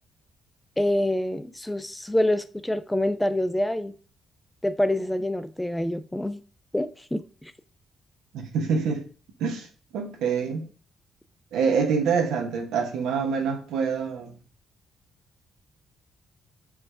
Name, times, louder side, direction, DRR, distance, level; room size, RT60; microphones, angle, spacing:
voice 1, 0.8-3.9 4.6-6.4 6.7-7.5, left 1 dB, 10° left, 0.4 m, -26 dB
voice 2, 8.3-9.0 9.4-9.7 9.9-10.6 11.5-14.3, right 5 dB, 85° right, 0.9 m, -26 dB
4.8 x 2.3 x 4.7 m
cardioid pair, 90°, 0 cm